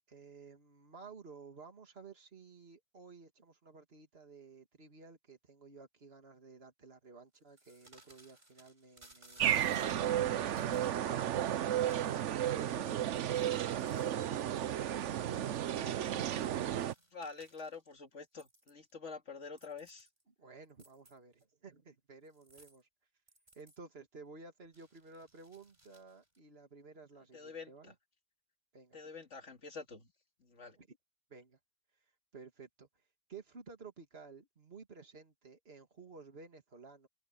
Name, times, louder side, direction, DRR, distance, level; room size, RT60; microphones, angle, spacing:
voice 1, 0.1-12.2 12.4-13.3 20.4-22.9 23.5-27.9 28.7-29.0 30.8-31.0 31.3-31.6 32.3-32.9 33.3-37.1, right 4 dB, 55° right, 2.6 m, -54 dB
sound 1, 7.3-10.9 11.8-12.4 12.8-14.2 15.5-18.0 18.4-18.9 19.4-20.2 20.6-21.4 22.3-22.8 23.3-23.8 24.7-26.4, right 2 dB, 40° right, 4.9 m, -62 dB
sound 2, 9.4-16.9, right 11 dB, 75° right, 1.0 m, -33 dB
voice 2, 17.1-20.1 27.3-27.9 28.9-30.1 30.4-30.8, left 4 dB, 80° left, 2.5 m, -47 dB
open air
omnidirectional pair, 1.2 m